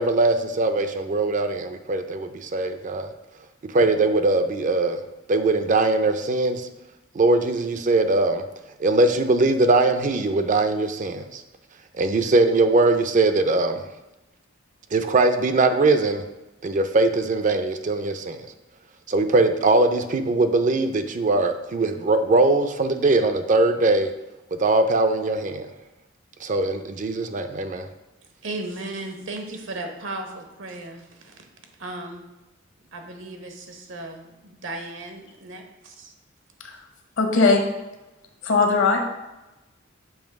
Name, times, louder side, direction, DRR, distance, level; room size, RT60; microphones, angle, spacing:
voice 1, 0.0-3.1 3.7-5.0 5.3-6.7 7.1-8.4 8.8-11.4 12.0-13.8 14.9-16.2 16.6-18.4 19.1-24.1 24.5-25.7 26.4-27.9, right 2 dB, 40° right, 8 dB, 0.4 m, -21 dB
voice 2, 28.4-31.5 31.8-32.3 32.9-36.1, right 2 dB, 75° right, 4 dB, 1.0 m, -36 dB
voice 3, 37.2-37.6 38.4-39.1, left 3 dB, 70° left, 3 dB, 1.1 m, -19 dB
7.1 x 3.0 x 5.1 m, 1.0 s
head